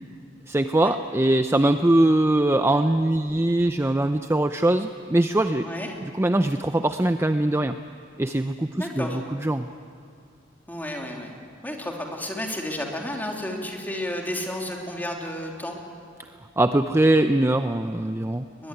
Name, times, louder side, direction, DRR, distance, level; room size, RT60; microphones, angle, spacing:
voice 1, 0.5-5.7 6.0-7.8 8.2-9.7 16.6-18.4, right 1 dB, 15° right, 8 dB, 0.6 m, -22 dB
voice 2, 5.6-6.0 8.7-9.2 10.7-11.3 11.6-15.8 18.6-18.7, left 1 dB, 10° left, 0 dB, 3.1 m, -32 dB
21.5 x 21.0 x 10.0 m, 2.4 s
head